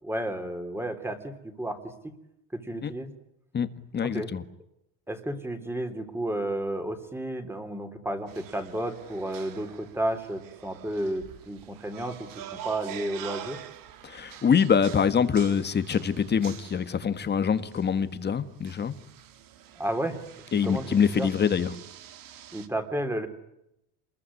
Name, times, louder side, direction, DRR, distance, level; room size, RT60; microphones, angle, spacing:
voice 1, 0.0-1.9 2.5-3.1 4.0-4.3 5.1-13.6 19.8-20.2 20.6-21.3 22.5-23.3, right 1 dB, 5° right, 8 dB, 3.3 m, -32 dB
voice 2, 3.9-4.4 14.0-18.9 20.5-21.7, left 7 dB, 25° left, 11 dB, 1.7 m, -24 dB
sound 1, 8.3-22.7, right 10 dB, 45° right, 2.5 m, -46 dB
27.5 x 21.5 x 9.8 m, 0.83 s
cardioid pair, 145°, 44 cm